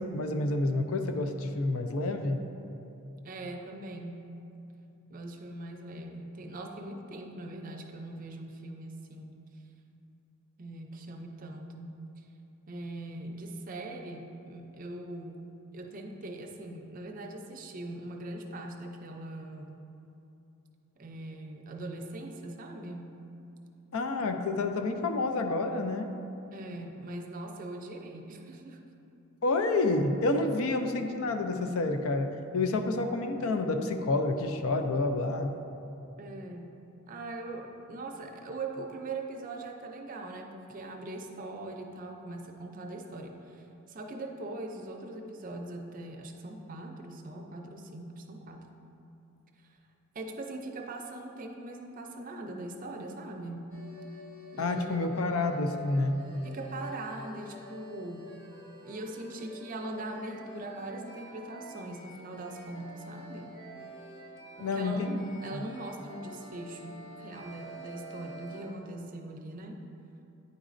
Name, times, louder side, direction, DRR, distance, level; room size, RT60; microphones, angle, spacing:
voice 1, 0.1-2.5 23.9-26.1 29.4-35.6 54.6-56.2 64.6-65.2 65.5-65.6, left 2 dB, 75° left, 6 dB, 0.4 m, -29 dB
voice 2, 3.2-4.2 5.1-9.4 10.6-12.3 12.7-15.4 15.7-19.8 21.0-23.1 26.5-28.8 36.2-36.7 37.1-48.7 49.7-49.8 50.1-53.8 54.5-55.0 56.4-58.4 58.8-63.6 64.6-69.8, right 2 dB, 40° right, 2 dB, 0.5 m, -41 dB
sound 1, 53.7-68.7, right 1 dB, 60° left, 1.4 m, -48 dB
9.5 x 4.0 x 2.5 m, 2.9 s
head